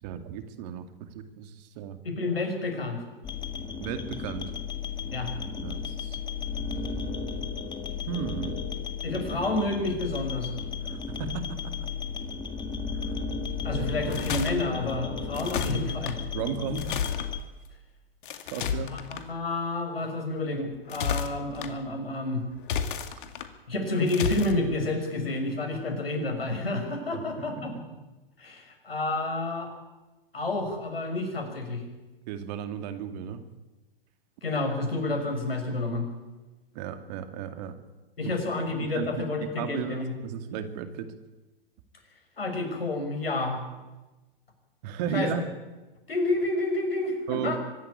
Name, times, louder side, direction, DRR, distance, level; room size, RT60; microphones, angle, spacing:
voice 1, 0.0-2.0 3.8-4.5 5.6-6.2 8.1-8.6 10.8-11.9 13.1-13.2 16.3-16.9 18.5-19.0 27.1-28.0 32.3-33.4 36.7-37.8 38.8-39.3 39.5-41.1 44.8-45.5 47.3-47.6, right 7 dB, 45° right, 8 dB, 2.4 m, -35 dB
voice 2, 2.0-3.0 5.1-5.3 9.0-10.5 13.6-16.2 18.9-22.4 23.7-27.7 28.4-29.7 30.3-31.8 34.4-36.1 38.2-40.1 42.4-43.6 45.1-45.3 46.1-47.6, left 2 dB, 80° left, 4 dB, 6.1 m, -29 dB
sound 1, 3.2-17.4, left 5 dB, 15° left, 1.9 m, -34 dB
sound 2, 13.9-14.5 15.3-16.1 16.8-17.3 18.2-19.2 20.7-21.7 22.6-23.5 24.1-24.5, left 7 dB, 60° left, 2.3 m, -31 dB
24.0 x 12.0 x 9.9 m, 1.1 s
hypercardioid pair, 110°, 29 cm